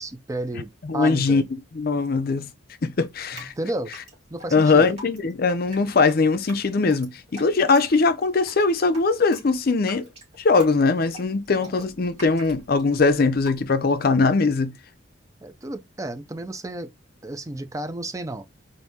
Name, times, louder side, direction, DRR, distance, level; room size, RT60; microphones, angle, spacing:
voice 1, 0.0-1.4 3.6-3.9 4.3-4.9 11.6-11.8 15.4-16.9 17.2-18.4, right 2 dB, 15° right, 0.4 m, -32 dB
voice 2, 0.8-1.4 1.7-2.5 2.8-3.5 4.5-10.1 10.4-14.7, left 4 dB, 50° left, 0.5 m, -21 dB
Drip, 3.0-14.0, right 1 dB, 30° right, 2.3 m, -45 dB
4.1 x 2.6 x 3.4 m
head